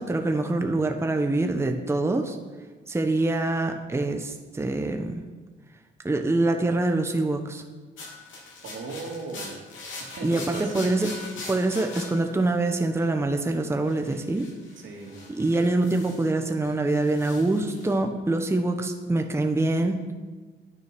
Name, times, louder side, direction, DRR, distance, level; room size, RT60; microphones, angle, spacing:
voice 1, 0.0-2.4 2.9-5.2 6.0-7.6 10.2-11.2 11.5-14.5 15.3-20.0, right 2 dB, 15° right, 5 dB, 0.9 m, -25 dB
sound 1, 8.0-13.2 13.9-16.4 16.6-17.9, left 3 dB, 80° left, 3.4 m, -42 dB
voice 2, 8.6-9.6 10.0-10.8 14.8-15.2, right 3 dB, 75° right, 1 dB, 2.4 m, -37 dB
9.5 x 9.3 x 6.1 m, 1.3 s
cardioid pair, 90°, 20 cm